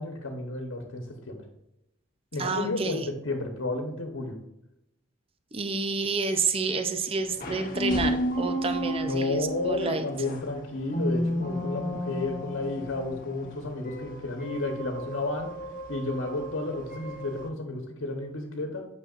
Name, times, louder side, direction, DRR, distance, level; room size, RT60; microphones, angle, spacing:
voice 1, 0.0-1.4 2.3-4.4 9.0-15.5 15.9-18.8, left 2 dB, 80° left, 2 dB, 1.1 m, -32 dB
voice 2, 2.4-3.1 5.5-10.1, right 4 dB, 30° right, 7 dB, 0.6 m, -29 dB
sound 1, 7.2-17.5, equal, 45° left, 1.0 m, -33 dB
9.1 x 6.3 x 2.5 m, 0.86 s
head